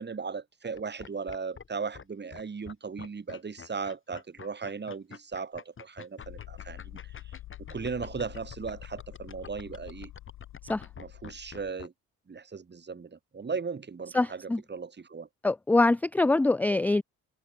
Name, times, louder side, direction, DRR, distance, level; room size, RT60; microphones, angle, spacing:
voice 1, 0.0-7.1 7.7-10.1 11.0-11.9 12.3-14.4 14.7-15.3, right 5 dB, 35° right, 6.6 m, -37 dB
sound 1, 0.7-1.7 1.9-2.0 2.3-11.9, left 6 dB, 40° left, 7.9 m, -46 dB
sound 2, 6.2-11.7, left 15 dB, 90° left, 7.6 m, -47 dB
voice 2, 14.1-14.6 15.4-17.0, left 2 dB, 5° left, 0.4 m, -24 dB
cardioid pair, 90°, 30 cm